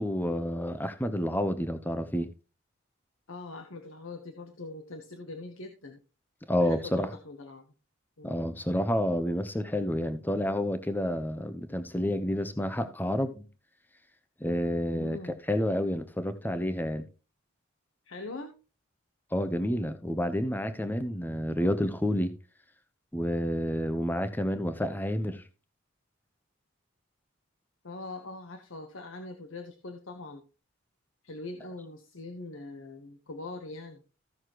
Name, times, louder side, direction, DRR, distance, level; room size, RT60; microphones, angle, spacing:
voice 1, 0.0-2.3 6.5-7.1 8.2-13.5 14.4-17.1 19.3-22.3 23.1-25.4, equal, 10° left, 0.8 m, -29 dB
voice 2, 3.3-6.0 6.6-7.6 8.2-8.4 14.9-15.4 18.0-18.5 27.8-30.4 31.2-34.0, left 2 dB, 75° left, 1.2 m, -42 dB
15.0 x 6.4 x 3.1 m
head